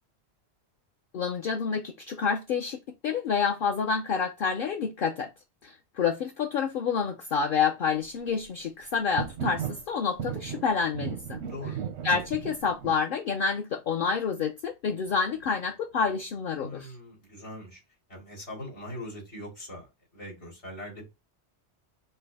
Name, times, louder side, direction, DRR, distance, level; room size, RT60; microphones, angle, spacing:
voice 1, 1.1-5.3 5.6-11.4 12.0-16.9, left 6 dB, 60° left, 0.7 m, -28 dB
sound 1, 9.2-9.8 10.2-12.9, right 8 dB, 85° right, 0.9 m, -35 dB
voice 2, 11.4-11.8 16.6-17.8 18.1-21.0, left 1 dB, 80° left, 3.0 m, -41 dB
5.7 x 2.1 x 3.3 m
omnidirectional pair, 1.1 m